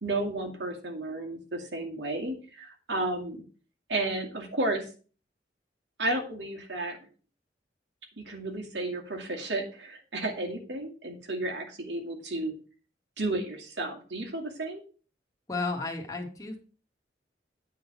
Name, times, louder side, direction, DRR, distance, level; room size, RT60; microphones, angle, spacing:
voice 1, 0.0-3.4 3.9-4.9 6.0-7.0 8.2-12.5 13.2-14.8, right 2 dB, 80° right, 2 dB, 2.4 m, -32 dB
voice 2, 15.5-16.6, left 3 dB, 20° left, 0 dB, 1.9 m, -33 dB
9.6 x 4.0 x 7.2 m, 0.38 s
head